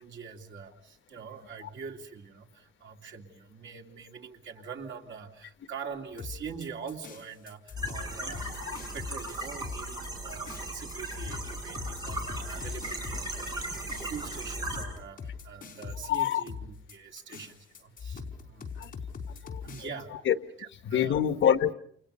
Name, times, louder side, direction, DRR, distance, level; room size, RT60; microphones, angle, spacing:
voice 1, 0.0-18.7 19.6-20.1 20.6-21.2, right 6 dB, 80° right, 2.9 m, -44 dB
sound 1, 6.2-19.9, left 5 dB, 45° left, 4.8 m, -42 dB
sound 2, 7.8-14.8, right 2 dB, 20° right, 7.0 m, -37 dB
voice 2, 16.1-16.4 18.8-18.9 19.3-19.6 20.3-20.4 20.9-21.7, left 10 dB, 80° left, 1.2 m, -26 dB
29.5 x 29.5 x 5.5 m
wide cardioid pair, 175°, 20 cm